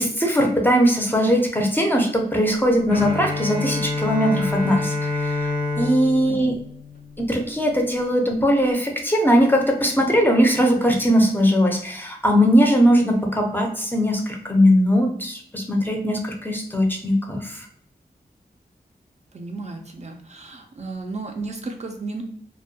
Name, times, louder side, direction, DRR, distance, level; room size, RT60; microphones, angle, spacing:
voice 1, 0.0-6.5 7.2-17.7, equal, 10° left, 1 dB, 0.5 m, -20 dB
Bowed string instrument, 2.9-7.7, left 3 dB, 60° left, 0.6 m, -27 dB
voice 2, 19.3-22.2, right 3 dB, 45° right, 3 dB, 0.4 m, -33 dB
2.2 x 2.2 x 2.7 m, 0.63 s
wide cardioid pair, 70°, 17 cm